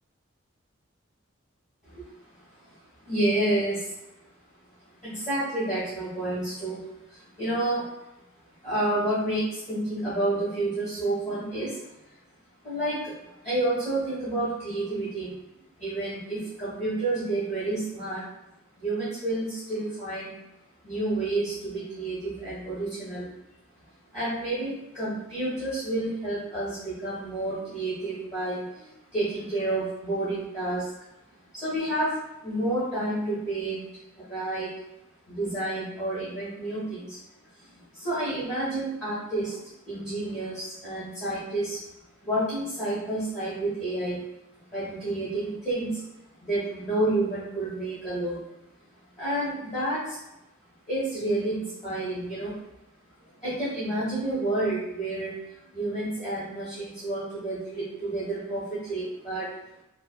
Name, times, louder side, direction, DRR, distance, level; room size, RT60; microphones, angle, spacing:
voice 1, 3.0-3.9 5.0-6.8 7.1-7.9 8.6-11.8 12.6-15.3 15.8-18.2 18.8-20.3 20.8-23.3 24.1-28.8 29.1-30.9 31.5-32.1 32.4-33.8 34.2-34.7 35.3-37.2 37.7-41.8 42.2-44.2 44.7-46.1 46.4-48.4 49.2-50.2 50.9-52.6 53.4-55.3 55.7-59.5, right 1 dB, 35° left, -12 dB, 1.1 m, -29 dB
3.2 x 2.2 x 2.2 m, 0.92 s
head